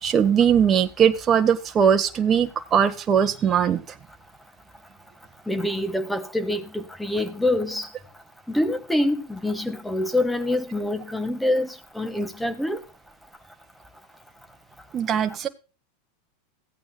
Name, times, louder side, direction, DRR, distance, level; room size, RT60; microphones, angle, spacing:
voice 1, 0.0-3.8 14.9-15.5, right 8 dB, 30° right, 1.4 m, -20 dB
voice 2, 5.5-7.9 8.5-12.8, left 1 dB, 5° left, 1.7 m, -25 dB
17.0 x 8.8 x 2.3 m
hypercardioid pair, 105°, 0 cm